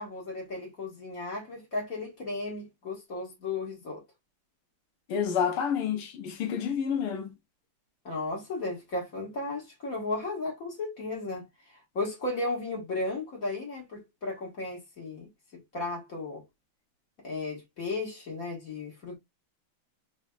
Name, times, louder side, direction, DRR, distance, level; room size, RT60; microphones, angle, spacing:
voice 1, 0.0-4.0 8.1-11.5 11.9-15.3 15.7-16.4 17.2-19.2, left 2 dB, 40° left, 2.0 m, -34 dB
voice 2, 5.1-7.4, left 7 dB, 80° left, 1.8 m, -29 dB
4.3 x 3.2 x 2.3 m
omnidirectional pair, 2.4 m